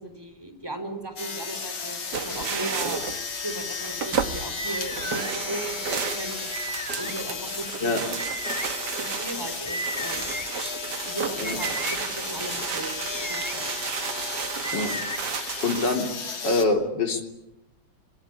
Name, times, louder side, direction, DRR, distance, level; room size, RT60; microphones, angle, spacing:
voice 1, 0.0-3.0 3.3-6.5 7.0-8.1 9.0-10.4 11.1-13.0 13.3-13.7 14.7-14.9, right 1 dB, 10° right, 8 dB, 4.1 m, -37 dB
sound 1, 1.2-16.6, left 5 dB, 80° left, 3.6 m, -34 dB
sound 2, 2.1-16.0, right 6 dB, 60° right, 2.0 m, -33 dB
Attention Whistle, 4.6-5.3 6.5-7.1 8.2-8.7 9.6-10.5 11.4-12.0 13.0-13.5 14.6-15.2, right 1 dB, 10° left, 2.1 m, -34 dB
voice 2, 15.6-16.1 16.4-17.2, left 3 dB, 65° left, 3 dB, 3.8 m, -24 dB
26.0 x 22.0 x 9.9 m, 0.90 s
omnidirectional pair, 2.1 m